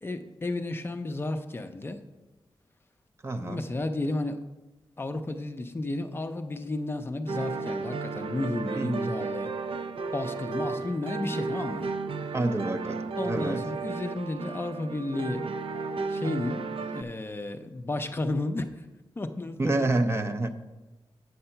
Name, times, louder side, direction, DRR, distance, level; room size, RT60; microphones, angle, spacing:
voice 1, 0.0-2.0 3.4-4.4 5.0-9.5 10.1-11.9 13.2-15.5 16.1-18.9 19.2-19.9, left 2 dB, 25° left, 7 dB, 0.5 m, -33 dB
voice 2, 3.2-3.7 8.8-9.2 12.3-13.7 19.6-20.5, right 2 dB, 30° right, 8 dB, 0.5 m, -28 dB
sound 1, 7.3-17.0, right 4 dB, 75° right, 0.5 m, -33 dB
7.8 x 6.7 x 5.6 m, 1.1 s
wide cardioid pair, 160°, 9 cm